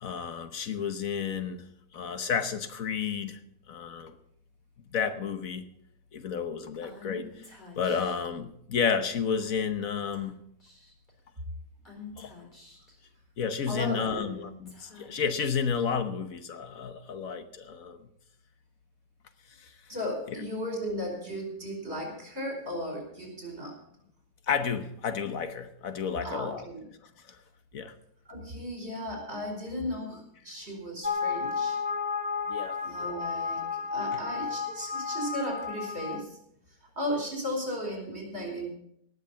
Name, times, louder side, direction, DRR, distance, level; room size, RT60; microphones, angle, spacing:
voice 1, 0.0-1.6 1.9-3.4 3.7-4.1 4.9-5.6 6.1-7.5 7.8-10.4 12.2-12.3 13.4-18.1 19.5-19.9 20.3-20.4 24.5-26.6 27.0-27.4 27.7-27.9 32.5-32.8 34.1-34.2, left 6 dB, 70° left, 10 dB, 1.4 m, -31 dB
Female speech woman speaking / Whispering, 6.8-8.3 9.3-9.7 10.1-10.3 10.6-11.1 11.9-12.9 13.9-15.8, left 5 dB, 30° left, 3.8 m, -48 dB
voice 2, 13.7-14.3 19.9-23.7 26.2-26.8 28.3-31.8 32.8-36.4 37.0-38.7, equal, 45° right, 1 dB, 5.3 m, -35 dB
sound 1, 31.0-36.2, left 5 dB, 5° right, 0.9 m, -32 dB
18.5 x 6.6 x 7.2 m, 0.72 s
omnidirectional pair, 1.5 m